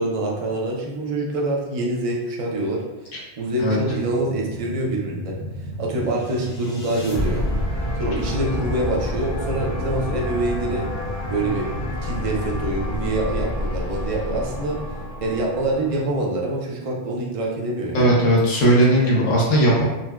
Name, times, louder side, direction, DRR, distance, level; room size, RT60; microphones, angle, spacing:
voice 1, 0.0-2.8 3.1-5.4 5.8-7.5 8.0-10.9 11.3-11.7 12.0-14.8 15.2-18.2, right 2 dB, 60° right, -1 dB, 0.3 m, -25 dB
sound 1, 3.6-13.7, equal, 40° right, 0.7 m, -37 dB
sound 2, 6.2-16.4, left 1 dB, 60° left, 1.0 m, -28 dB
voice 2, 17.9-19.8, right 1 dB, 85° left, -5 dB, 1.1 m, -17 dB
3.9 x 2.1 x 2.3 m, 1.1 s
omnidirectional pair, 1.2 m